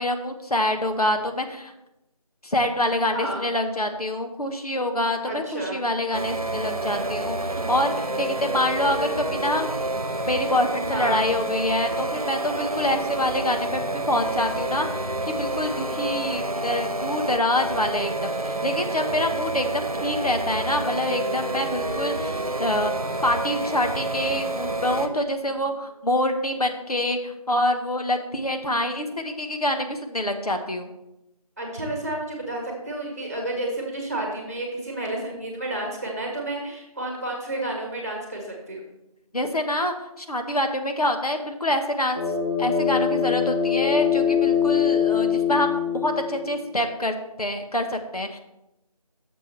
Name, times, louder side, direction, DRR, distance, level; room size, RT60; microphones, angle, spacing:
voice 1, 0.0-1.7 2.4-9.9 10.3-22.9 23.2-30.9 39.3-42.2 42.6-48.4, left 1 dB, 80° left, 5 dB, 1.3 m, -26 dB
voice 2, 5.2-5.8 10.9-11.2 16.5-16.6 25.2-25.7 31.6-38.8, right 1 dB, 25° right, 0 dB, 1.7 m, -31 dB
sound 1, 6.1-25.1, right 2 dB, 70° right, 1.0 m, -29 dB
sound 2, 42.1-46.6, left 7 dB, 25° left, 0.9 m, -23 dB
10.0 x 6.8 x 3.3 m, 0.90 s
figure-of-eight pair, 170°, 19 cm